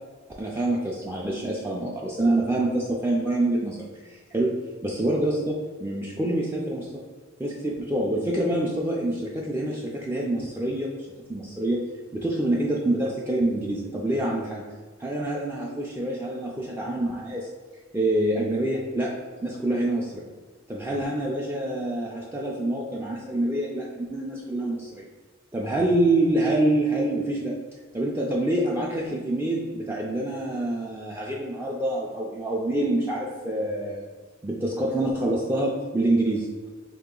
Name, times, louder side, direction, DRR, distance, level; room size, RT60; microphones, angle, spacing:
voice 1, 0.4-4.5 4.8-7.0 7.4-10.9 11.3-11.8 12.1-14.6 15.0-17.5 17.9-19.1 19.4-20.1 20.7-25.1 25.5-27.6 27.9-34.1 34.4-36.5, right 1 dB, 10° right, -4 dB, 0.3 m, -26 dB
3.5 x 2.9 x 3.7 m, 1.5 s
head